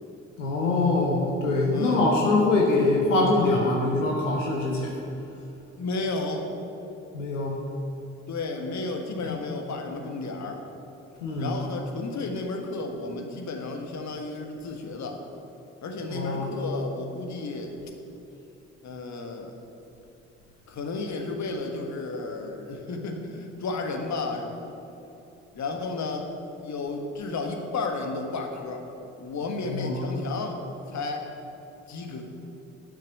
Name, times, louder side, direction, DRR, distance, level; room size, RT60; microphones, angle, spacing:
voice 1, 0.4-4.9 7.1-7.6 9.2-9.4 11.2-11.5 16.1-16.5 29.7-30.1, left 2 dB, 80° left, -1 dB, 1.1 m, -24 dB
voice 2, 1.7-2.0 5.8-6.4 8.3-10.6 11.4-15.2 15.8-17.7 18.8-19.5 20.7-24.5 25.5-26.3 26.6-28.8 29.2-30.6 30.9-31.2 31.9-32.2, left 3 dB, 50° left, 3 dB, 1.6 m, -32 dB
10.5 x 6.5 x 7.7 m, 2.9 s
figure-of-eight pair, 45°, 37 cm